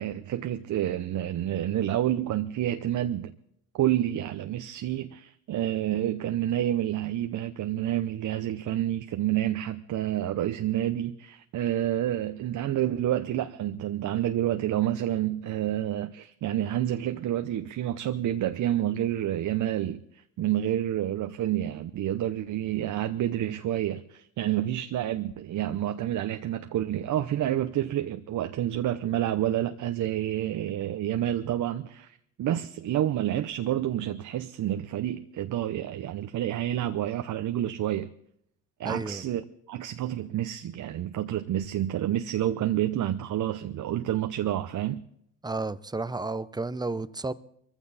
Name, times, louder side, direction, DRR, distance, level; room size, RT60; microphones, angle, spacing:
voice 1, 0.0-3.3 3.7-38.1 38.8-45.0, right 12 dB, 55° right, 0.9 m, -29 dB
voice 2, 38.8-39.2 45.4-47.3, right 3 dB, 10° right, 0.7 m, -32 dB
22.5 x 15.0 x 4.2 m
supercardioid pair, 80°, 36 cm